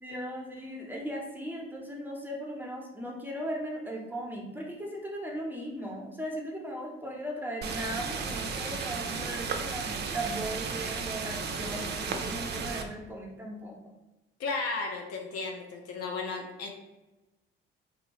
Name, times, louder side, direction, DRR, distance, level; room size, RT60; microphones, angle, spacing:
voice 1, 0.0-13.8, right 1 dB, 5° right, -2 dB, 0.8 m, -37 dB
sound 1, 7.6-12.8, right 5 dB, 35° right, 0.4 m, -34 dB
voice 2, 14.4-16.7, left 3 dB, 55° left, 2 dB, 0.5 m, -34 dB
2.6 x 2.6 x 3.0 m, 1.1 s
hypercardioid pair, 50°, 29 cm